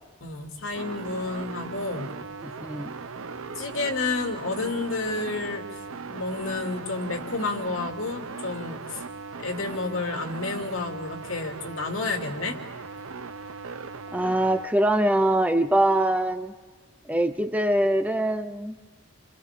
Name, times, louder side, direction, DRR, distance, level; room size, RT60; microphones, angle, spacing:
voice 1, 0.2-2.1 3.6-5.6 6.1-9.0 9.4-12.6, left 3 dB, 75° left, 2 dB, 2.7 m, -30 dB
sound 1, 0.7-14.7, right 4 dB, 85° right, 0.8 m, -38 dB
voice 2, 2.4-2.9 14.1-16.5 17.0-18.8, right 1 dB, 5° right, 8 dB, 0.6 m, -23 dB
29.5 x 26.5 x 3.7 m, 1.4 s
head